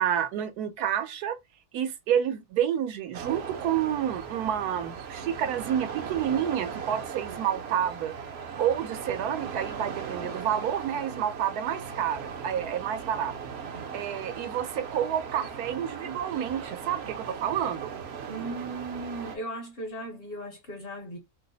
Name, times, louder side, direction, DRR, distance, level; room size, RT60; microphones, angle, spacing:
voice 1, 0.0-1.4 1.7-8.1 8.6-13.3 13.9-17.9, right 9 dB, 85° right, 1.2 m, -29 dB
sound 1, 3.1-19.4, right 6 dB, 60° right, 0.7 m, -38 dB
voice 2, 18.3-21.2, right 2 dB, 50° left, 0.7 m, -37 dB
3.0 x 2.0 x 3.8 m
omnidirectional pair, 1.6 m